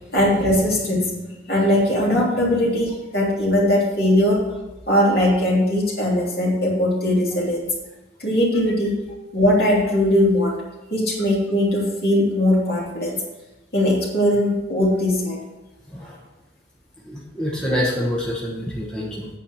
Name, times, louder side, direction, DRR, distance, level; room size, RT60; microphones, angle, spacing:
voice 1, 0.1-4.4 4.9-7.7 8.2-9.0 9.3-10.5 10.9-13.2 13.7-15.4, left 1 dB, 55° left, -4 dB, 3.0 m, -20 dB
voice 2, 17.0-19.3, equal, 5° left, -5 dB, 1.2 m, -26 dB
8.8 x 5.0 x 7.1 m, 1.1 s
head